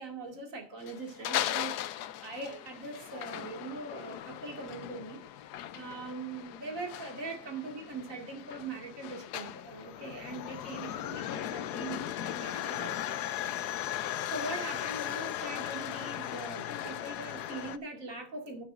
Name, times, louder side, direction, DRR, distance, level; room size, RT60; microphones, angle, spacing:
voice 1, 0.0-5.2 5.7-13.1 13.8-18.6, right 3 dB, 40° right, 2 dB, 2.5 m, -41 dB
sound 1, 0.8-17.8, left 12 dB, 70° left, 1.0 m, -38 dB
13.5 x 9.1 x 2.5 m, 0.43 s
omnidirectional pair, 2.2 m